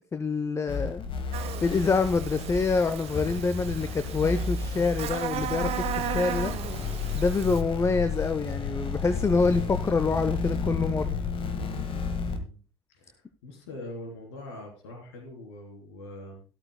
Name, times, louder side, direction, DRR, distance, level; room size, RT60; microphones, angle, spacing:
voice 1, 0.1-1.1 1.6-6.5 7.1-11.2, left 4 dB, 20° left, 11 dB, 0.7 m, -26 dB
sound 1, 0.7-12.4, left 4 dB, 35° left, 1.6 m, -32 dB
Buzz, 1.3-7.6, right 11 dB, 45° right, 1.1 m, -36 dB
voice 2, 12.9-16.4, left 1 dB, 65° left, 2 dB, 3.5 m, -43 dB
13.5 x 13.0 x 2.2 m, 0.36 s
figure-of-eight pair, 65°, 15 cm